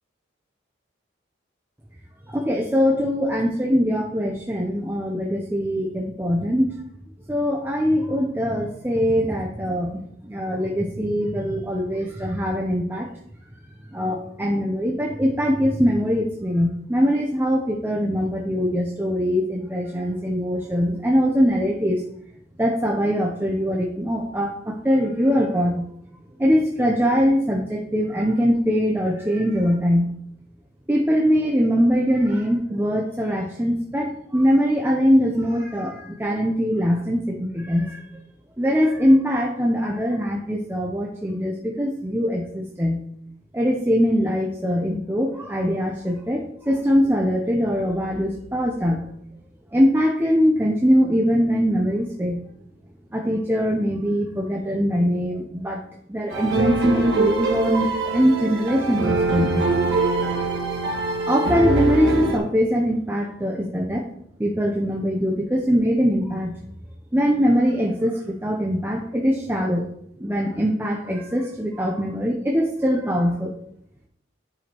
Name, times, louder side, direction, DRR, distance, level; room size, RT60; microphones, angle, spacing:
voice 1, 2.3-6.8 7.3-13.1 13.9-22.0 22.6-25.9 26.4-30.1 30.9-38.0 38.6-43.0 43.5-49.0 49.7-52.4 53.1-55.8 56.1-59.7 61.2-64.1 64.4-66.5 67.1-69.9 70.2-73.5, equal, 10° right, -1 dB, 0.6 m, -22 dB
sound 1, 56.3-62.4, right 2 dB, 65° right, 1.6 m, -23 dB
10.0 x 4.9 x 3.0 m, 0.71 s
head